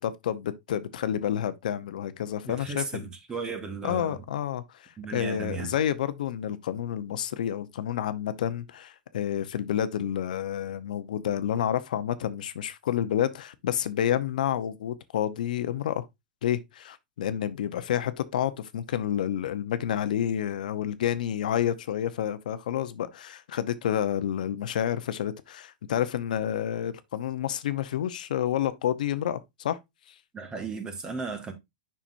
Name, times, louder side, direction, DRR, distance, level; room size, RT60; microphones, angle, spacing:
voice 1, 0.0-3.0 3.8-16.1 16.4-29.8 30.1-30.2, left 10 dB, 75° left, 0.8 m, -29 dB
voice 2, 2.5-4.2 5.0-5.7 30.3-31.5, right 4 dB, 15° right, 1.5 m, -35 dB
7.2 x 5.9 x 2.6 m
hypercardioid pair, 140°, 4 cm